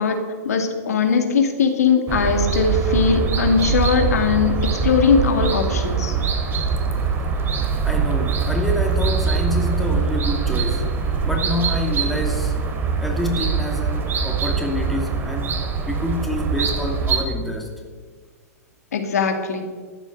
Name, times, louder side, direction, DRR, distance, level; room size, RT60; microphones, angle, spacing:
voice 1, 0.0-4.6 4.8-6.1 18.9-19.6, left 5 dB, 75° left, 4 dB, 2.4 m, -20 dB
sound 1, 2.1-17.2, right 5 dB, 25° right, 2.6 m, -23 dB
voice 2, 7.8-10.9 11.2-12.5 13.0-15.6 15.9-17.7, left 1 dB, ahead, 0 dB, 2.6 m, -27 dB
14.0 x 10.0 x 7.8 m, 1.5 s
hypercardioid pair, 110°, 9 cm